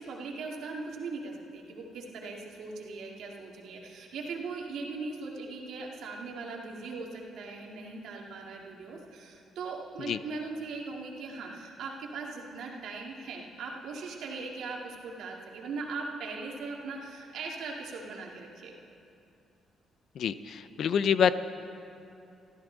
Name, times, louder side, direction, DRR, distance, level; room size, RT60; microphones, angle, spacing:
voice 1, 0.0-18.7, right 4 dB, 75° right, -1 dB, 2.3 m, -39 dB
voice 2, 20.2-21.3, left 8 dB, 65° left, 13 dB, 0.5 m, -26 dB
25.0 x 13.5 x 4.0 m, 2.7 s
cardioid pair, 90°, 0 cm